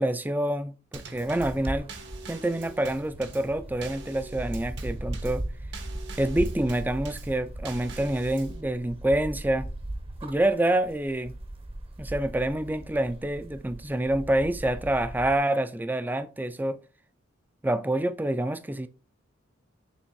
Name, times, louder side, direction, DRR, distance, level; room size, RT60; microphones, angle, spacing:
voice 1, 0.0-1.9 2.3-5.4 6.2-9.7 10.2-11.3 12.0-16.8 17.6-18.9, right 1 dB, 10° right, 0.4 m, -27 dB
Drum kit / Snare drum / Bass drum, 0.9-8.6, right 3 dB, 60° right, 1.1 m, -44 dB
sound 1, 1.0-15.3, right 1 dB, 30° right, 0.8 m, -38 dB
6.9 x 3.2 x 4.6 m
head